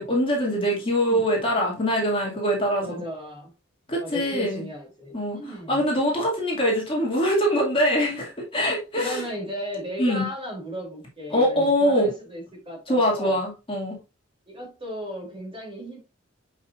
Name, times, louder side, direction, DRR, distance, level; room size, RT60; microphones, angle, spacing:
voice 1, 0.0-3.0 3.9-4.6 5.1-5.4 5.7-9.2 10.0-10.3 11.3-12.1 12.9-14.0, equal, 25° left, 2.3 m, -23 dB
voice 2, 2.8-3.5 4.0-5.8 8.9-13.4 14.5-16.0, equal, 25° right, 3.2 m, -35 dB
7.1 x 5.6 x 2.6 m
head